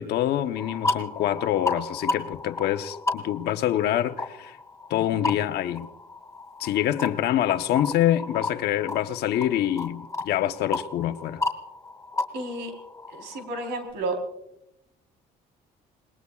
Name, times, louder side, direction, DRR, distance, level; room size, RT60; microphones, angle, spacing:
voice 1, 0.0-4.6 4.9-5.9 6.6-11.4, left 12 dB, 70° left, 1.0 m, -26 dB
sound 1, 0.5-13.9, left 2 dB, 15° left, 2.6 m, -34 dB
voice 2, 12.3-12.7 13.1-14.2, right 2 dB, 85° right, 3.9 m, -31 dB
28.0 x 20.5 x 2.4 m
cardioid pair, 110°, 17 cm